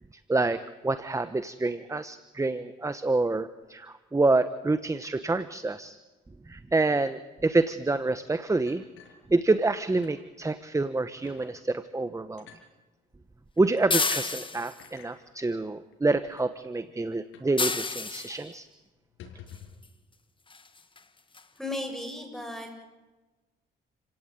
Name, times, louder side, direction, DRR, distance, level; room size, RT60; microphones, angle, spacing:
voice 1, 0.3-6.0 6.5-8.8 9.3-12.5 13.6-18.7, right 2 dB, 15° right, 12 dB, 1.2 m, -27 dB
sound 1, 8.7-9.7 10.0-10.2 10.6-10.7 11.2-11.5 12.4-12.6 13.6-13.8 14.8-15.1 15.9-16.0 16.3-16.5 17.3-17.6 17.8-17.9 18.3-18.5 19.0-19.8, left 8 dB, 85° left, 6.8 m, -50 dB
sound 2, 13.9-14.9 17.6-18.4 19.8-19.9 20.5-20.7 21.0-21.1 21.4-21.5, left 4 dB, 25° left, 1.9 m, -29 dB
voice 2, 21.6-22.7, left 1 dB, ahead, 4 dB, 7.9 m, -35 dB
30.0 x 17.0 x 9.2 m, 1.2 s
cardioid pair, 90°, 20 cm